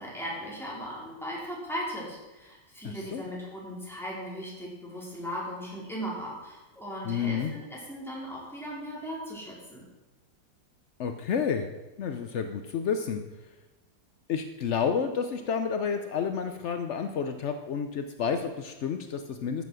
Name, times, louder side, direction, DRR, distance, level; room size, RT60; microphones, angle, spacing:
voice 1, 0.0-9.8, equal, ahead, -5 dB, 3.8 m, -38 dB
voice 2, 2.8-3.2 7.0-7.5 11.0-11.7 12.0-13.2 14.3-19.6, left 6 dB, 70° left, 7 dB, 0.6 m, -30 dB
13.5 x 7.1 x 6.2 m, 1.1 s
omnidirectional pair, 2.0 m